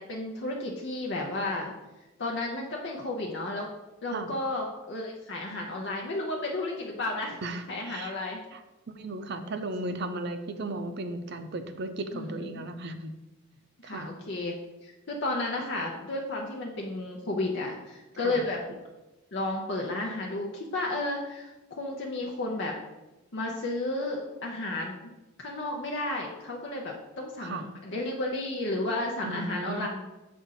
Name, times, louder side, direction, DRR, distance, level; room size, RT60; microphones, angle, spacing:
voice 1, 0.0-1.7 2.2-3.7 4.0-7.4 7.7-8.4 12.1-12.3 12.5-12.6 13.8-14.6 14.8-18.6 19.3-22.8 23.3-24.9 25.4-29.9, left 2 dB, 55° left, -1 dB, 0.7 m, -32 dB
voice 2, 7.4-8.1 8.5-8.6 8.9-13.1 13.8-14.1 18.2-18.4 27.4-27.7 29.2-29.9, right 2 dB, 50° right, 9 dB, 0.5 m, -35 dB
6.9 x 2.5 x 5.6 m, 1.1 s
head